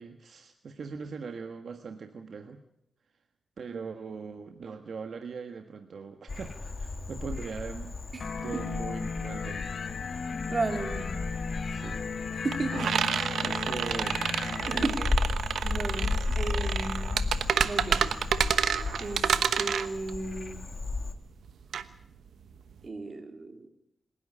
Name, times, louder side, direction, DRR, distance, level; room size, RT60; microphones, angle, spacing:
voice 1, 0.0-2.6 3.6-8.0 8.4-9.7 11.7-12.1 12.7-12.9 13.4-14.2 14.7-15.0 16.3-16.4, right 5 dB, 65° right, 6 dB, 1.5 m, -40 dB
Frog, 6.3-21.1, left 3 dB, 40° left, 1.8 m, -35 dB
voice 2, 8.1-8.6 10.5-11.2 12.4-12.9 14.7-15.0 15.6-17.2 17.6-18.0 19.0-20.7 22.8-23.7, right 3 dB, 40° right, 6 dB, 3.0 m, -34 dB
sound 1, 8.2-14.9, left 5 dB, 60° left, 1.5 m, -36 dB
sound 2, 9.8-9.9 10.2-22.8, right 7 dB, 85° right, 1.1 m, -29 dB
26.5 x 11.0 x 9.9 m, 0.78 s
cardioid pair, 75°, 0 cm